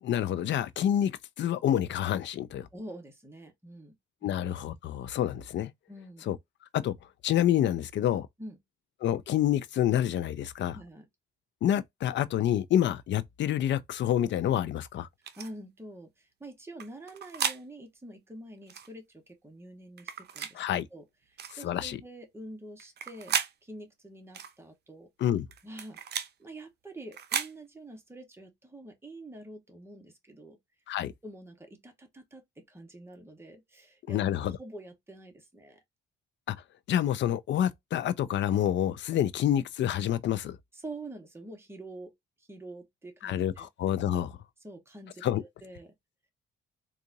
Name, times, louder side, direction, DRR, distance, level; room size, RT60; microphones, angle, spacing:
voice 1, 0.0-1.1 1.4-2.7 4.2-5.7 6.3-6.4 6.7-6.9 7.2-8.3 9.0-10.8 11.6-15.1 20.5-20.8 21.6-22.0 25.2-25.5 30.9-31.1 34.1-34.6 36.5-36.6 36.9-40.6 43.2-44.4 45.2-45.4, left 11 dB, 65° left, 0.5 m, -28 dB
voice 2, 2.7-3.9 4.2-4.4 5.9-6.3 8.4-8.6 10.7-11.1 15.2-20.6 20.9-23.4 23.6-25.1 25.6-26.0 26.4-30.6 31.2-34.2 34.6-35.8 40.7-42.1 42.4-43.7 44.6-45.9, right 1 dB, 10° right, 1.3 m, -46 dB
sound 1, 15.2-15.5 16.8-17.6 18.7-18.9 20.0-20.5 21.4-21.6 22.8-23.5 24.3-24.5 25.5-26.3 27.1-27.5, right 8 dB, 55° right, 0.6 m, -34 dB
3.9 x 2.4 x 2.7 m
cardioid pair, 90°, 20 cm